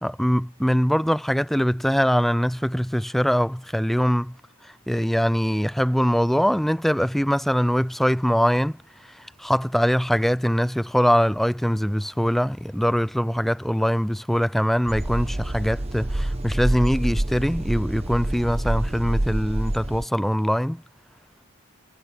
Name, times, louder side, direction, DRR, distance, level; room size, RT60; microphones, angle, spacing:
voice 1, 0.0-4.3 4.9-8.8 9.1-20.8, equal, ahead, 0.4 m, -22 dB
sound 1, 14.9-20.0, right 1 dB, 30° right, 0.9 m, -27 dB
head